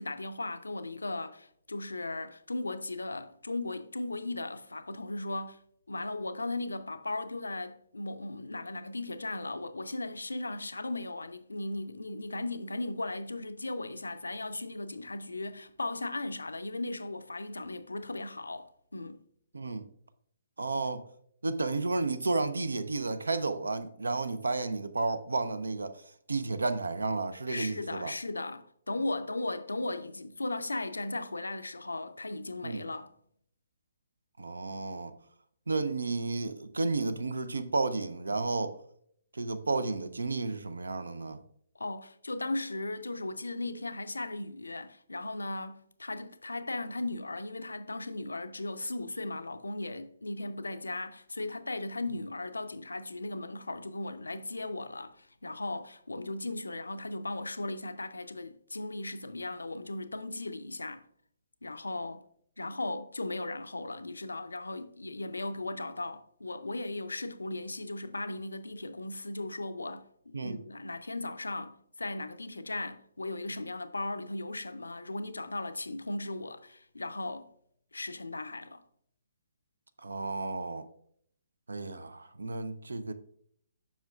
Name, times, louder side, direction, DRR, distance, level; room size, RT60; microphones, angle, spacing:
voice 1, 0.0-5.6 5.9-19.2 27.5-33.1 41.8-61.0 61.6-62.2 62.6-77.5 77.9-78.8, left 2 dB, 75° left, 0.5 m, -37 dB
voice 2, 19.5-19.9 20.6-21.0 21.4-26.0 26.3-28.1 32.6-32.8 34.4-35.1 35.7-38.8 39.3-41.4 70.3-70.6 80.0-80.9 81.7-83.1, right 3 dB, 70° right, 0.5 m, -32 dB
7.4 x 5.7 x 2.3 m
figure-of-eight pair, 130°, 0 cm